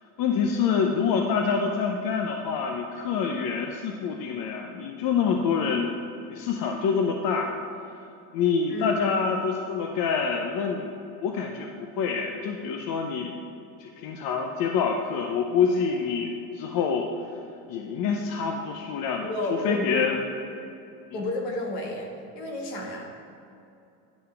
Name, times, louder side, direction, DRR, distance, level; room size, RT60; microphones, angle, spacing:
voice 1, 0.2-6.0 6.3-7.5 8.3-10.9 11.2-13.5 13.8-17.1 17.7-19.3 19.6-20.2, left 6 dB, 50° left, 3 dB, 0.7 m, -26 dB
voice 2, 8.7-9.0 19.2-19.9 21.1-22.1 22.4-23.1, left 2 dB, 70° left, -1 dB, 1.7 m, -31 dB
10.5 x 3.7 x 5.6 m, 2.7 s
hypercardioid pair, 80°, 46 cm